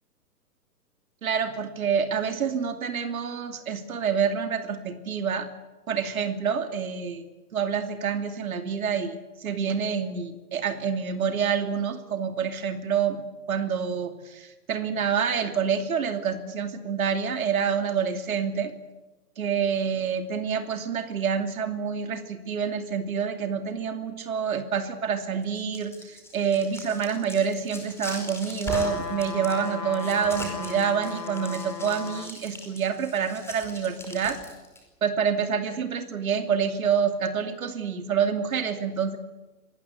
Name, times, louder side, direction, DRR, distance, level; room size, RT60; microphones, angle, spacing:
voice 1, 1.2-5.5 5.9-7.3 7.5-18.7 19.4-34.4 35.0-39.2, right 7 dB, 55° right, 8 dB, 2.7 m, -27 dB
sound 1, 25.4-34.8, left 1 dB, 5° left, 5.0 m, -40 dB
sound 2, 28.7-32.3 32.9-33.0, left 4 dB, 75° left, 1.9 m, -36 dB
25.5 x 20.0 x 8.2 m, 1.1 s
figure-of-eight pair, 125°, 49 cm